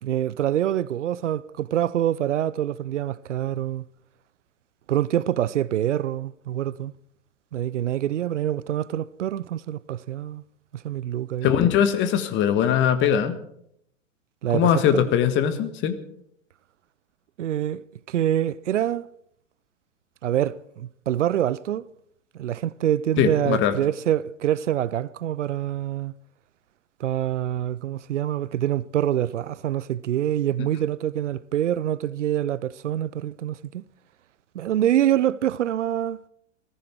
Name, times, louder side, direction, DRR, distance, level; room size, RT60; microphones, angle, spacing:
voice 1, 0.0-3.8 4.9-6.9 7.5-10.4 10.7-11.5 14.4-15.0 17.4-19.1 20.2-21.8 22.3-26.1 27.0-33.8 34.5-36.2, right 11 dB, 65° right, 0.6 m, -25 dB
voice 2, 11.4-13.3 14.5-16.0 23.2-23.8 30.6-30.7, left 9 dB, 30° left, 1.7 m, -21 dB
19.5 x 14.5 x 4.6 m
figure-of-eight pair, 105°, 39 cm